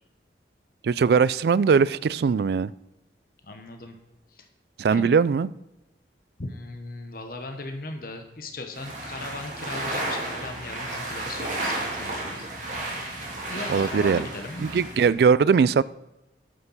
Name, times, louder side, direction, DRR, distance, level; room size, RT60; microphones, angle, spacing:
voice 1, 0.8-2.7 4.8-5.5 13.7-14.2 14.6-15.8, right 5 dB, 65° right, 19 dB, 0.3 m, -20 dB
voice 2, 3.4-4.0 4.3-4.5 4.9-5.1 6.4-12.8 13.1-14.8, left 2 dB, 55° left, 5 dB, 1.1 m, -38 dB
sound 1, 8.7-15.1, right 2 dB, 45° right, 3.2 m, -32 dB
11.5 x 6.7 x 5.6 m, 0.97 s
head